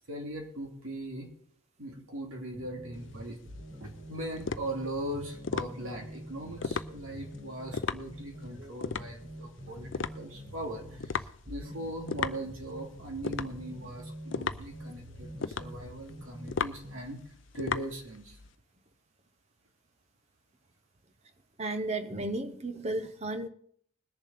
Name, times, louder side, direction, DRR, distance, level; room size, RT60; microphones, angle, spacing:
voice 1, 0.1-1.3 1.8-3.4 3.8-17.2 17.5-18.4, right 1 dB, 70° right, 2.4 m, -40 dB
sound 1, 2.5-17.0, right 1 dB, 50° right, 4.5 m, -46 dB
sound 2, 3.0-18.5, left 5 dB, 55° left, 0.5 m, -37 dB
voice 2, 21.6-23.5, right 2 dB, 30° right, 0.8 m, -33 dB
21.0 x 7.1 x 4.2 m
head